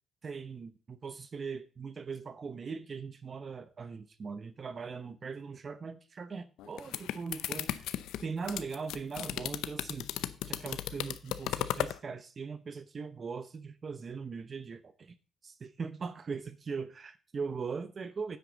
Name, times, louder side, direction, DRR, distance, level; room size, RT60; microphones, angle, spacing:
voice 1, 0.2-7.9 8.2-10.1 10.5-15.1 15.4-18.4, right 5 dB, 40° right, 0.8 m, -40 dB
sound 1, 6.6-12.0, left 12 dB, 90° left, 0.6 m, -35 dB
9.8 x 8.2 x 3.9 m
cardioid pair, 90°, 0 cm